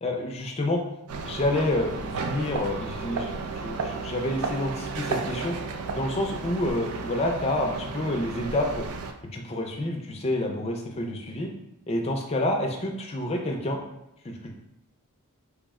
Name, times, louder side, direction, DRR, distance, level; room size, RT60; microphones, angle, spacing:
voice 1, 0.0-0.8 1.2-5.5 5.9-8.9 9.3-11.5 11.9-13.8 14.2-14.5, left 1 dB, 30° left, 2 dB, 0.4 m, -28 dB
sound 1, 1.1-9.1, right 4 dB, 85° right, 0.4 m, -33 dB
3.5 x 2.1 x 3.5 m, 0.90 s
head